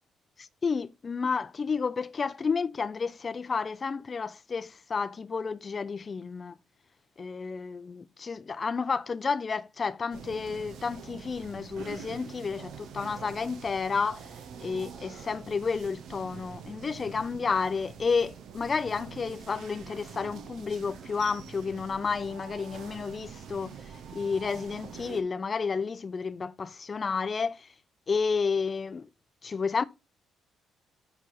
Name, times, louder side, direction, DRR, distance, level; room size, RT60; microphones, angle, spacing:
voice 1, 0.4-6.5 7.2-14.2 14.6-23.8 24.1-27.7 28.1-29.1 29.4-29.8, left 5 dB, 40° left, 0.6 m, -31 dB
sound 1, 10.1-25.2, right 7 dB, 65° right, 1.2 m, -45 dB
9.8 x 3.5 x 5.5 m
hypercardioid pair, 50°, 0 cm